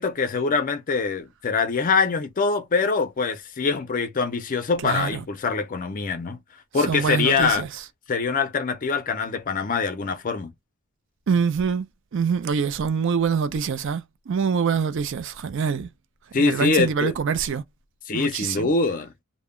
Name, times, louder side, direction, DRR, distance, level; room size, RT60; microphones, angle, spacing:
voice 1, 0.0-6.4 6.7-7.6 8.1-10.5 16.3-17.1 18.1-19.1, left 4 dB, 40° left, 0.4 m, -24 dB
voice 2, 4.8-5.2 6.8-7.7 11.3-15.9 16.3-17.6 18.1-18.7, right 6 dB, 60° right, 0.4 m, -25 dB
2.1 x 2.1 x 3.5 m
head